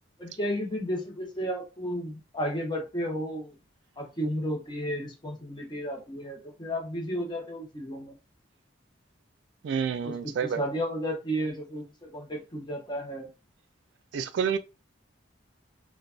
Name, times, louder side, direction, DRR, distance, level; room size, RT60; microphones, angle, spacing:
voice 1, 0.2-3.5 4.0-8.1 10.0-13.3, equal, 25° left, 0.8 m, -33 dB
voice 2, 9.6-10.6 14.1-14.6, right 7 dB, 65° right, 0.3 m, -28 dB
3.1 x 2.2 x 2.5 m
head